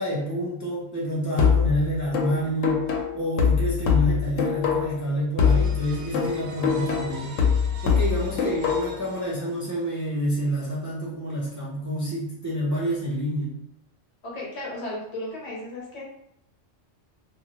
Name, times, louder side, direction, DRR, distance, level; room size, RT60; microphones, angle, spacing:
voice 1, 0.0-2.9 3.1-7.4 7.8-13.6, equal, 25° right, -7 dB, 0.4 m, -28 dB
sound 1, 1.4-5.1 5.4-9.1, left 7 dB, 90° left, 1.0 m, -23 dB
sound 2, 5.4-10.0, right 2 dB, 60° right, 0.8 m, -43 dB
voice 2, 14.2-16.0, left 1 dB, 65° left, -4 dB, 1.1 m, -34 dB
2.7 x 2.4 x 2.9 m, 0.77 s
omnidirectional pair, 1.3 m